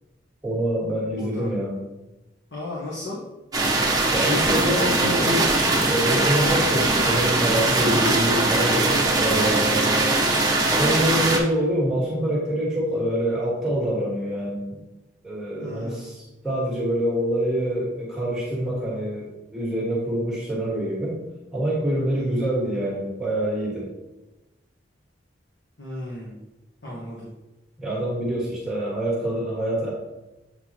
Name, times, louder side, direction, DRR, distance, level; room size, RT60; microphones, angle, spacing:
voice 1, 0.4-1.7 4.1-10.2 10.7-14.8 15.2-21.2 21.5-23.9 27.8-29.9, right 1 dB, 5° right, -7 dB, 1.5 m, -26 dB
voice 2, 1.2-1.5 2.5-3.2 15.6-16.2 22.1-22.4 25.8-26.4 26.8-27.3, left 1 dB, 70° left, -4 dB, 1.2 m, -35 dB
sound 1, 3.5-11.4, right 2 dB, 20° right, 0.8 m, -21 dB
7.7 x 4.1 x 2.9 m, 1.0 s
head